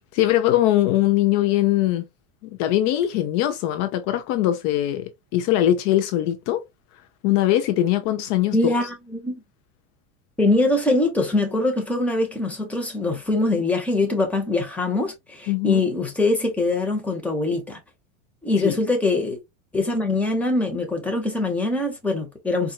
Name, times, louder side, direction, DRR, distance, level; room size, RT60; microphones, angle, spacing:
voice 1, 0.1-2.1 2.6-6.6 7.2-8.7 15.5-15.8 18.6-18.7, left 13 dB, 55° left, 0.6 m, -21 dB
voice 2, 8.5-9.4 10.4-17.8 18.4-19.4 19.7-22.7, left 2 dB, 5° left, 0.9 m, -23 dB
4.2 x 2.5 x 2.3 m
supercardioid pair, 135°, 40 cm